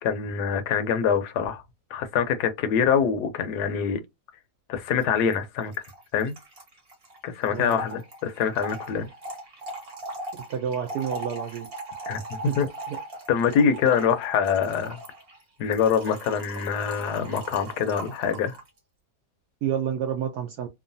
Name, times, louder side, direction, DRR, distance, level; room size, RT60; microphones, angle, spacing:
voice 1, 0.0-1.6 1.9-4.0 4.7-5.7 6.1-6.3 7.2-9.1 12.1-12.7 13.3-15.0 15.6-18.6, left 7 dB, 75° left, 1.1 m, -25 dB
Trickle dribble / Fill (with liquid), 5.0-5.1 5.3-5.4 5.6-18.7, right 2 dB, 40° right, 1.0 m, -39 dB
voice 2, 7.5-7.8 10.5-11.7 12.4-12.6 12.9-13.0 19.6-20.7, right 8 dB, 70° right, 1.1 m, -29 dB
3.0 x 2.2 x 2.6 m
omnidirectional pair, 1.9 m